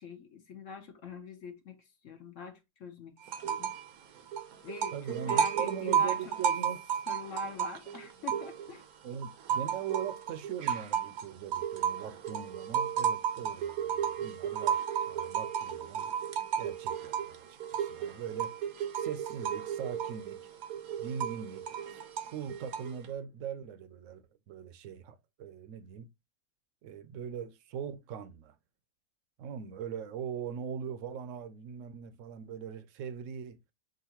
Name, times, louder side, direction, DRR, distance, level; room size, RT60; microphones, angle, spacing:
voice 1, 0.0-3.7 4.6-6.4 7.1-8.9, left 6 dB, 65° left, 1.1 m, -45 dB
sound 1, 3.3-3.9 4.2-8.8 9.2-23.1, right 8 dB, 90° right, 1.2 m, -33 dB
voice 2, 4.9-6.9 9.0-16.1 16.6-18.6 18.9-20.5 21.0-22.0 22.3-26.1 26.8-28.5 29.4-33.6, right 7 dB, 70° right, 0.9 m, -41 dB
6.2 x 2.5 x 2.8 m
omnidirectional pair, 1.5 m